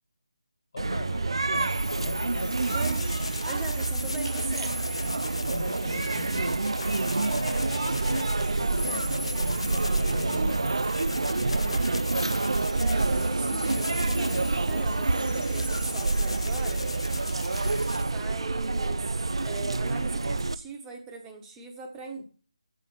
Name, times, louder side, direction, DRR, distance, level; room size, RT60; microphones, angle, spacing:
voice 1, 0.7-2.6 5.4-6.6 7.2-10.9 11.2-11.8, left 4 dB, 50° left, 7 dB, 1.9 m, -41 dB
sound 1, 0.8-20.5, right 3 dB, 60° right, 0.4 m, -27 dB
sound 2, 1.5-18.1, left 6 dB, 25° left, 0.6 m, -43 dB
sound 3, 2.6-18.0, left 2 dB, 75° left, 0.5 m, -40 dB
voice 2, 2.7-3.1 3.4-4.8 12.8-16.9 17.9-19.0 19.4-22.2, right 4 dB, 10° right, 3 dB, 1.1 m, -40 dB
7.9 x 4.3 x 5.9 m, 0.39 s
figure-of-eight pair, 155°, 3 cm